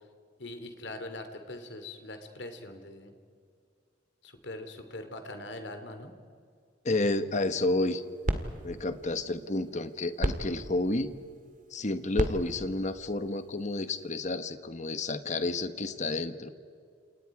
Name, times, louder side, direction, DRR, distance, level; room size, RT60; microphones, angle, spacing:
voice 1, 0.4-3.1 4.2-6.1, left 2 dB, 65° left, 7 dB, 2.6 m, -42 dB
voice 2, 6.8-8.0 8.6-11.1 11.7-16.5, left 2 dB, 40° left, 11 dB, 1.2 m, -30 dB
sound 1, 7.7-14.1, right 1 dB, 45° right, 1.9 m, -37 dB
30.0 x 28.0 x 4.8 m, 2.2 s
head